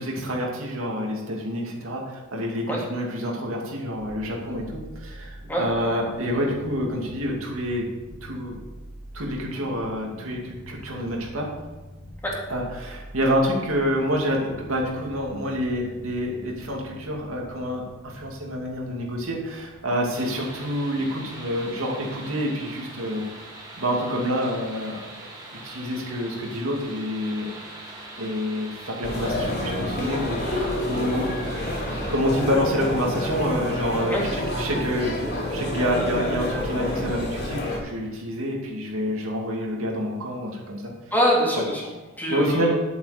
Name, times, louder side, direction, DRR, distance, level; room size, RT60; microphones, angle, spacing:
voice 1, 0.0-7.9 8.2-8.6 9.1-11.5 12.5-23.2 23.8-25.3 25.6-27.5 28.2-31.2 32.1-34.2 34.5-40.9 41.5-41.6 42.3-42.7, equal, 80° right, -1 dB, 2.5 m, -27 dB
sound 1, 3.9-22.9, equal, 45° right, 2.5 m, -45 dB
sound 2, 20.1-32.2, right 2 dB, 20° right, 2.3 m, -42 dB
sound 3, 29.0-37.8, left 1 dB, 55° left, 3.4 m, -28 dB
voice 2, 41.1-42.7, equal, 10° left, -4 dB, 2.8 m, -24 dB
10.5 x 8.5 x 5.2 m, 1.2 s
head